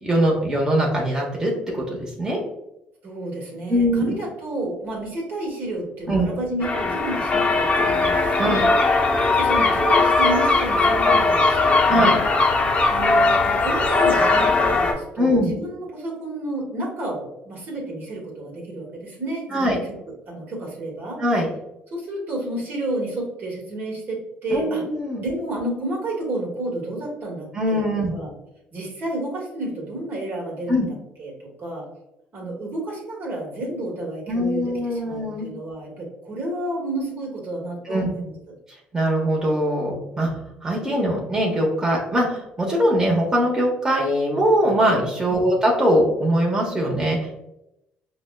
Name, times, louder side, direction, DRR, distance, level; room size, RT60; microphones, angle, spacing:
voice 1, 0.0-2.4 3.7-4.0 6.1-6.3 8.4-8.7 11.9-12.2 15.2-15.5 19.5-19.8 21.2-21.5 24.5-25.2 27.5-28.1 30.7-30.9 34.3-35.5 37.9-38.1 38.9-40.3 40.6-47.2, equal, 15° right, -3 dB, 0.9 m, -21 dB
voice 2, 3.0-8.6 9.2-12.2 12.9-19.9 20.3-21.2 21.9-24.8 25.2-27.8 28.1-28.3 28.7-31.3 31.6-31.8 32.3-38.3 45.3-45.5, right 1 dB, 55° right, -2 dB, 1.3 m, -31 dB
sound 1, 6.6-14.9, left 3 dB, 35° left, 0.6 m, -19 dB
5.1 x 2.1 x 2.2 m, 0.87 s
supercardioid pair, 75°, 4 cm